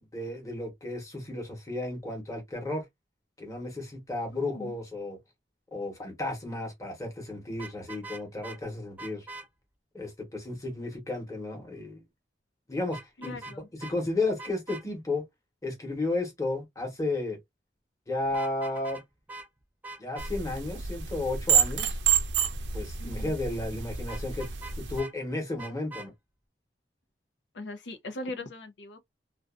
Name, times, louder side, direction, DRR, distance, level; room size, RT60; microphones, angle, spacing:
voice 1, 0.1-2.8 3.4-5.2 5.7-9.3 9.9-12.0 12.7-13.4 13.8-15.2 15.6-17.4 18.1-19.0 20.0-22.0 22.7-24.5 24.8-26.1, left 2 dB, 20° left, 1.0 m, -33 dB
voice 2, 4.3-4.7 13.2-13.7 23.0-23.4 27.5-29.0, left 2 dB, 85° left, 0.6 m, -40 dB
Vehicle horn car horn honking, 7.5-8.6 9.0-9.5 12.9-13.6 13.8-13.9 14.4-14.8 18.3-19.0 19.3-19.5 19.8-20.3 24.1-25.1 25.6-26.1, right 3 dB, 10° right, 0.4 m, -43 dB
sound 1, 20.2-25.0, right 8 dB, 90° right, 0.5 m, -29 dB
2.5 x 2.2 x 2.4 m
head